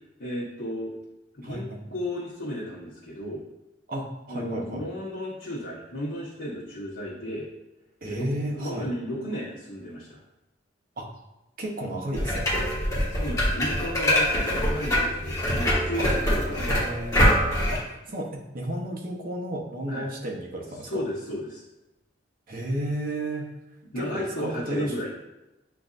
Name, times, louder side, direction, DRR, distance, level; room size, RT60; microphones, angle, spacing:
voice 1, 0.2-0.9 1.3-1.7 1.9-3.4 4.3-7.5 8.0-10.2 13.1-16.7 19.9-20.0 20.8-21.6 23.9-25.1, equal, 85° left, -10 dB, 1.2 m, -33 dB
voice 2, 1.4-1.9 3.9-4.8 8.0-8.9 11.0-11.1 11.6-12.5 16.0-16.1 16.7-21.0 22.5-23.5 24.0-24.9, right 1 dB, 50° right, 0 dB, 0.8 m, -33 dB
sound 1, 12.1-17.8, equal, 15° left, 1.3 m, -24 dB
7.7 x 2.6 x 2.5 m, 0.97 s
head